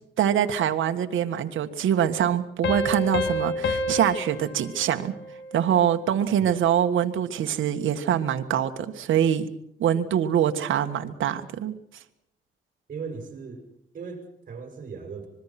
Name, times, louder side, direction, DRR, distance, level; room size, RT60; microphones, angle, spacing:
voice 1, 0.2-5.1 5.5-9.5 9.8-11.7, right 9 dB, 75° right, 6 dB, 1.7 m, -24 dB
sound 1, 2.6-5.9, left 2 dB, 65° left, 2.3 m, -29 dB
voice 2, 12.9-13.7 13.9-15.3, right 5 dB, 40° right, 3 dB, 6.9 m, -38 dB
25.5 x 22.0 x 6.0 m, 0.77 s
cardioid pair, 130°, 20 cm